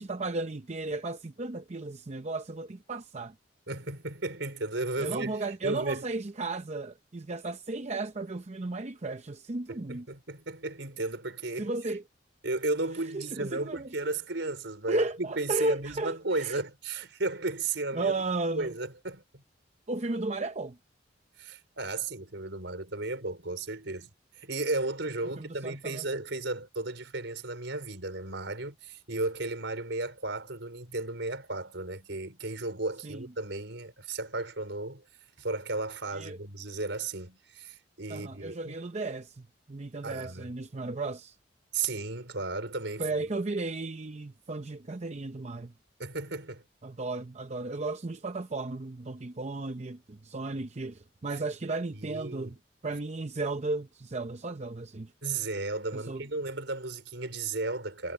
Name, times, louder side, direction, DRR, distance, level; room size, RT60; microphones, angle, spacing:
voice 1, 0.0-3.3 5.0-10.1 11.6-12.0 13.1-13.9 14.9-16.6 17.9-18.7 19.9-20.8 25.2-26.2 33.0-33.3 36.1-36.4 38.1-41.4 43.0-45.7 46.8-52.6 52.8-55.1 55.9-56.2, right 3 dB, 35° right, 0.7 m, -34 dB
voice 2, 3.7-6.0 9.7-11.7 12.4-18.1 18.5-19.4 21.4-24.1 24.4-35.0 35.4-38.8 40.0-40.5 41.7-43.1 46.0-46.6 51.3-51.4 52.0-52.5 55.2-58.1, right 3 dB, 75° right, 4.6 m, -34 dB
head